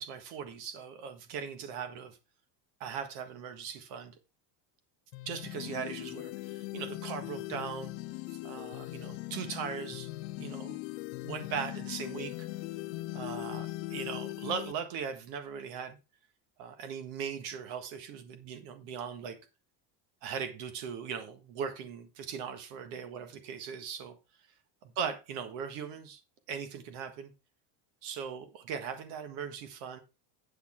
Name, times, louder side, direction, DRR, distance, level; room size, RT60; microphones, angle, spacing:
voice 1, 0.0-2.2 2.8-4.1 5.2-7.9 8.4-10.1 10.4-10.8 11.2-12.5 13.1-16.0 16.6-19.4 20.2-24.1 24.8-26.2 26.5-27.3 28.0-30.0, right 7 dB, 70° right, 1.7 m, -39 dB
sound 1, 5.1-14.7, left 18 dB, 85° left, 0.8 m, -40 dB
9.8 x 6.5 x 4.4 m
cardioid pair, 155°, 47 cm